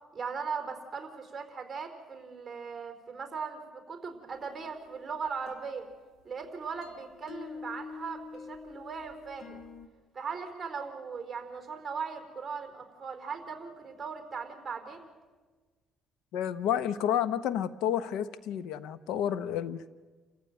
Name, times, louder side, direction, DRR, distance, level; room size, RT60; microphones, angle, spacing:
voice 1, 0.1-5.9 6.2-9.6 10.1-15.1, right 5 dB, 20° right, 6 dB, 4.5 m, -39 dB
sound 1, 4.3-9.9, left 5 dB, 55° left, 2.1 m, -47 dB
voice 2, 16.3-19.9, left 10 dB, 90° left, 15 dB, 0.9 m, -30 dB
29.0 x 15.0 x 9.1 m, 1.4 s
cardioid pair, 120°, 0 cm